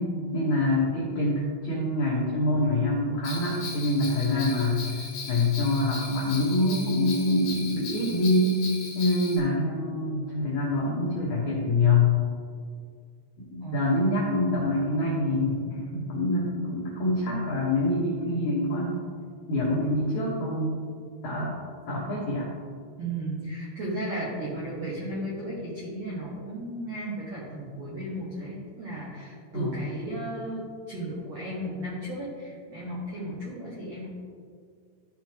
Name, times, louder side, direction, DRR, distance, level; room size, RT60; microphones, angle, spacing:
voice 1, 0.0-8.6 8.9-12.1 13.5-19.0 19.5-20.8 21.2-21.5 21.9-22.5 29.5-29.9, left 2 dB, 90° left, -6 dB, 1.6 m, -25 dB
Bell, 3.2-9.4, left 4 dB, 60° left, 2.0 m, -38 dB
voice 2, 13.6-14.0 23.0-34.1, right 1 dB, 75° right, -8 dB, 1.5 m, -35 dB
14.0 x 5.9 x 3.0 m, 2.1 s
omnidirectional pair, 5.6 m